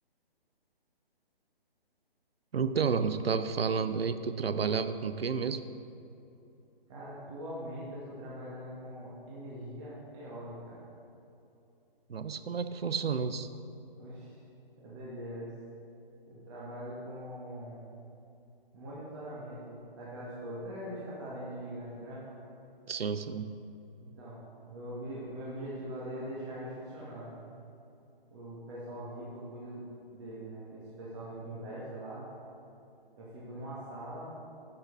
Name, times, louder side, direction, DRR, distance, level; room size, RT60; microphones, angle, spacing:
voice 1, 2.5-5.6 12.1-13.5 22.9-23.6, right 5 dB, 80° right, 11 dB, 0.7 m, -31 dB
voice 2, 6.9-10.8 13.9-14.4 14.8-15.5 16.3-17.8 18.7-22.3 24.0-24.4 24.7-27.4 28.3-29.8 30.1-32.3 33.2-34.3, right 1 dB, 30° right, -7 dB, 2.1 m, -42 dB
11.5 x 6.9 x 4.9 m, 2.8 s
hypercardioid pair, 150°, 29 cm